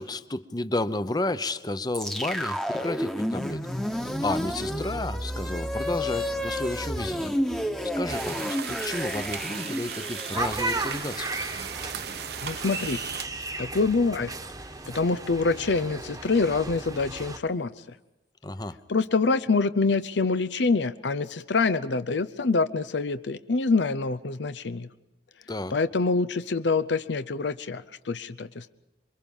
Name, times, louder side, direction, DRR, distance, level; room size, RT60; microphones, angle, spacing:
voice 1, 0.0-3.7 4.2-7.3 7.8-11.3 18.4-18.8 25.5-25.7, left 2 dB, 25° left, 13 dB, 0.8 m, -32 dB
sound 1, 1.9-12.1, equal, 5° left, 1.2 m, -31 dB
sound 2, 8.1-13.2, right 8 dB, 65° right, 1.0 m, -37 dB
sound 3, 10.3-17.4, right 2 dB, 20° right, 1.2 m, -35 dB
voice 2, 12.4-13.0 13.6-14.3 14.9-17.7 18.9-24.9 25.7-28.7, left 4 dB, 90° left, 12 dB, 0.7 m, -25 dB
27.5 x 23.0 x 5.5 m, 0.97 s
head